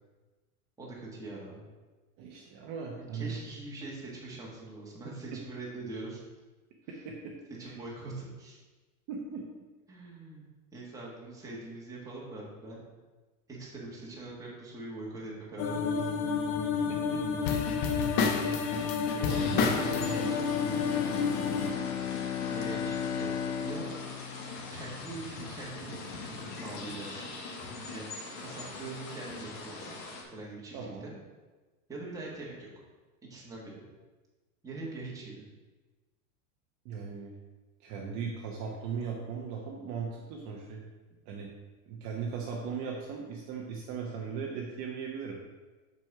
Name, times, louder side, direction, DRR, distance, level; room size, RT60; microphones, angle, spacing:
voice 1, 0.8-1.6 3.1-6.2 7.6-8.6 9.9-10.4 10.7-12.8 13.5-16.1 19.2-20.6 22.5-23.3 23.6-23.9 24.7-25.9 26.5-27.3 27.9-30.0 30.3-31.1 31.9-32.8 33.3-33.8 34.6-35.5, right 2 dB, 10° right, -5 dB, 1.6 m, -42 dB
voice 2, 2.2-3.4 5.3-5.4 7.0-7.4 7.6-7.8 9.1-9.5 16.9-17.4 30.7-31.1 36.8-37.3 37.8-40.9 41.3-41.5 41.9-45.4, right 6 dB, 40° right, -1 dB, 0.9 m, -38 dB
sound 1, 15.6-21.7, left 5 dB, 30° left, 0.5 m, -29 dB
Bowed string instrument, 19.2-25.5 25.9-26.0, left 8 dB, 80° left, 0.8 m, -35 dB
sound 2, 19.3-30.2, left 2 dB, 50° left, 1.5 m, -42 dB
6.1 x 5.3 x 5.9 m, 1.2 s
supercardioid pair, 165°, 44 cm